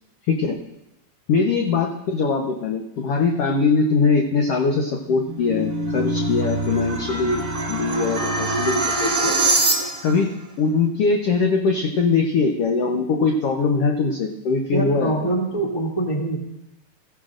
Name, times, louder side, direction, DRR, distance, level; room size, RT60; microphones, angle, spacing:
voice 1, 0.3-0.6 1.3-9.4 10.0-10.3 10.6-15.1, left 4 dB, 70° left, 2 dB, 1.4 m, -21 dB
sound 1, 5.1-10.2, right 2 dB, 35° right, 1.6 m, -24 dB
voice 2, 14.7-16.4, right 2 dB, 10° left, -2 dB, 1.9 m, -24 dB
23.5 x 15.0 x 2.5 m, 0.88 s
omnidirectional pair, 4.0 m